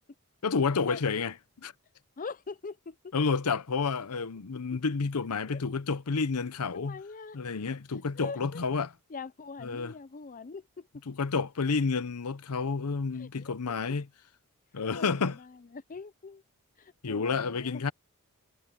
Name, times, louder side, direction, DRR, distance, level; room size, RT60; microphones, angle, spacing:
voice 1, 0.4-1.3 1.6-1.7 3.1-7.0 7.3-8.9 9.6-9.9 11.1-14.1 14.7-15.4 17.0-17.9, left 4 dB, 90° left, 0.8 m, -30 dB
voice 2, 2.2-3.2 4.7-4.8 5.5-5.6 6.7-7.4 8.2-8.6 9.1-10.9 13.1-13.6 14.8-16.4 16.8-17.9, left 4 dB, 35° left, 0.6 m, -43 dB
head